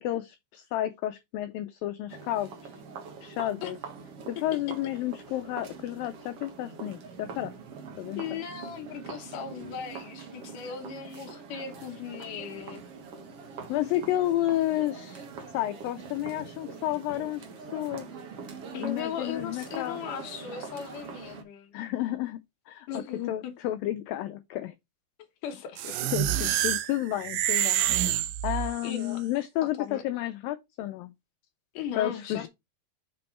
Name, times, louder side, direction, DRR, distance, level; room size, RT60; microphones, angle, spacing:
voice 1, 0.0-2.8 3.2-3.8 4.3-7.5 8.0-8.2 13.7-15.3 15.5-18.2 18.8-20.0 21.7-22.4 22.7-22.9 23.3-24.7 26.1-31.1 32.0-32.5, left 14 dB, 90° left, 2.0 m, -31 dB
sound 1, 2.1-21.4, right 5 dB, 65° right, 1.5 m, -43 dB
voice 2, 8.2-12.8 18.7-21.7 22.9-23.5 25.4-26.1 26.4-26.5 28.8-29.2 29.6-30.0 31.7-32.5, left 8 dB, 70° left, 2.1 m, -38 dB
sound 2, 25.8-29.0, right 12 dB, 85° right, 2.0 m, -27 dB
6.2 x 5.3 x 4.3 m
omnidirectional pair, 4.7 m